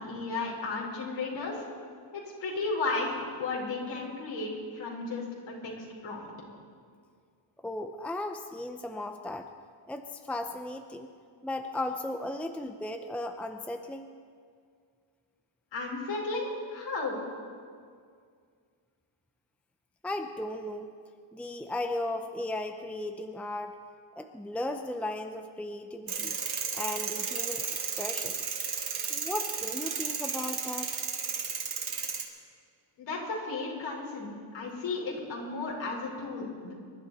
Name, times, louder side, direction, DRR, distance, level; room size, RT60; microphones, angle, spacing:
voice 1, 0.0-1.7 2.1-6.3 15.7-17.2 33.0-36.7, left 3 dB, 60° left, -3 dB, 4.9 m, -34 dB
voice 2, 7.6-9.5 9.9-11.1 11.4-14.1 20.0-20.9 21.3-23.8 24.2-26.4 26.7-27.7 28.0-28.4 29.1-30.9, left 1 dB, 5° left, 6 dB, 0.6 m, -36 dB
sound 1, 26.1-32.2, right 6 dB, 50° right, 2.2 m, -33 dB
26.5 x 11.5 x 4.2 m, 2.1 s
cardioid pair, 115°, 49 cm